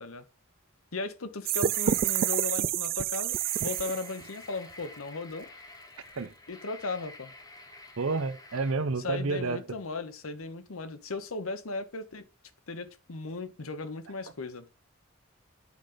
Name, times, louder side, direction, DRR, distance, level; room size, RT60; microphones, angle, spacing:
voice 1, 0.9-5.5 6.5-7.3 9.0-12.2 12.7-14.7, left 3 dB, 85° left, 1.0 m, -37 dB
sound 1, 1.5-4.3, right 10 dB, 45° right, 0.3 m, -28 dB
sound 2, 1.7-2.7 3.1-8.7, left 2 dB, 20° left, 1.1 m, -49 dB
voice 2, 8.0-9.6, right 4 dB, 75° right, 0.7 m, -29 dB
8.3 x 5.1 x 3.9 m
head